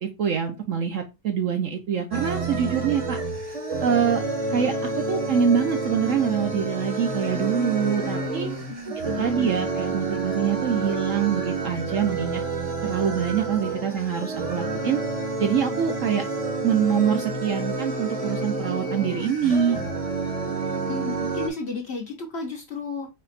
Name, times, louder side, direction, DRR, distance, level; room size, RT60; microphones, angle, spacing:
voice 1, 0.0-3.2 3.8-4.2 4.5-4.7 5.1-8.5 9.2-12.4 12.8-15.0 15.4-16.2 16.6-19.8, right 7 dB, 60° right, 5 dB, 0.9 m, -25 dB
sound 1, 2.1-21.5, right 3 dB, 30° right, 0.8 m, -29 dB
voice 2, 8.7-9.6 20.8-23.1, left 3 dB, 50° left, 2 dB, 0.9 m, -33 dB
4.3 x 3.0 x 3.9 m, 0.25 s
omnidirectional pair, 1.8 m